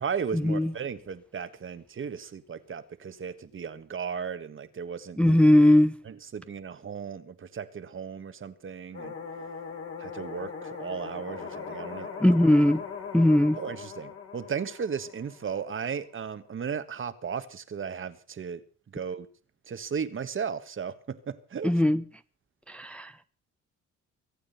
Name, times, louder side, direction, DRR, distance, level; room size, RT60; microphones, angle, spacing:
voice 1, 0.0-5.4 6.0-9.1 10.0-12.1 13.6-18.6 18.9-19.3 19.7-21.7, right 6 dB, 45° right, 1.6 m, -35 dB
voice 2, 5.2-5.9 12.2-12.8 13.1-13.6 21.6-22.0 22.7-23.1, left 1 dB, 5° left, 0.7 m, -19 dB
sound 1, 8.9-15.9, left 5 dB, 50° left, 3.7 m, -40 dB
24.0 x 8.8 x 5.7 m
cardioid pair, 90°, 30 cm